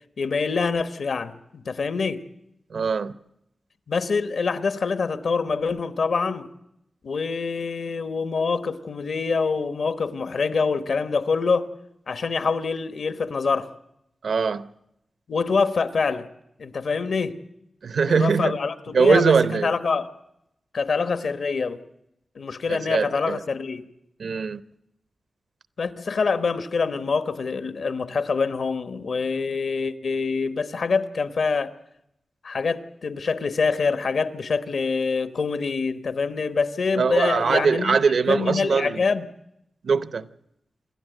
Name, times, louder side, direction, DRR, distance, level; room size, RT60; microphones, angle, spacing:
voice 1, 0.2-2.2 3.9-6.5 7.0-11.7 12.1-13.7 15.3-16.3 16.6-17.4 18.1-20.1 20.7-21.8 22.4-23.9 25.8-31.7 32.4-38.0 38.3-39.3, left 4 dB, 75° left, 1.2 m, -25 dB
voice 2, 2.7-3.1 14.2-14.7 17.8-18.5 18.9-19.7 22.7-23.4 24.2-24.6 37.0-39.0 39.8-40.3, right 5 dB, 80° right, 0.8 m, -21 dB
27.5 x 12.5 x 9.1 m
wide cardioid pair, 125°, 0 cm